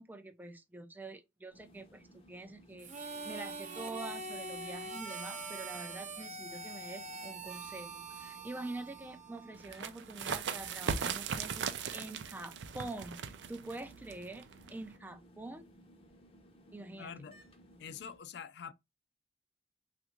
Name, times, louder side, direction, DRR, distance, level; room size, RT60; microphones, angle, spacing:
voice 1, 0.0-13.2 13.5-15.7 16.7-17.1, right 2 dB, 10° right, 0.4 m, -46 dB
sound 1, 1.5-18.2, equal, 35° left, 0.7 m, -60 dB
Harmonica, 2.8-9.7, right 3 dB, 45° right, 0.7 m, -44 dB
sound 2, 9.6-15.0, right 6 dB, 85° right, 0.4 m, -39 dB
voice 2, 17.0-17.4 17.8-18.7, left 7 dB, 70° left, 0.4 m, -45 dB
3.4 x 2.5 x 2.9 m
head